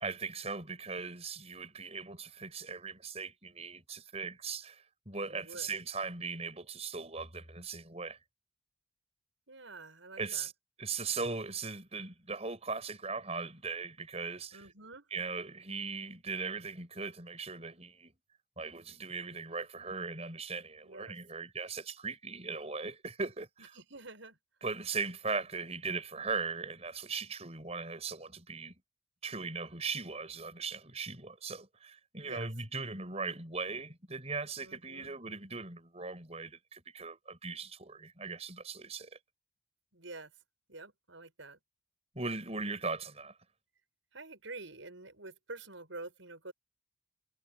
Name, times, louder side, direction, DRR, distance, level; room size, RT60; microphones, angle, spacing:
voice 1, 0.0-8.2 10.2-10.5 10.8-14.6 15.1-18.1 18.6-23.5 24.6-28.8 29.2-39.1 42.2-43.3, right 4 dB, 35° right, 5.5 m, -39 dB
voice 2, 5.1-5.8 9.5-10.5 14.5-15.1 20.8-21.2 23.7-24.4 32.2-32.5 34.6-35.1 39.9-40.3 40.7-41.6 44.1-46.5, right 2 dB, 80° right, 6.2 m, -48 dB
head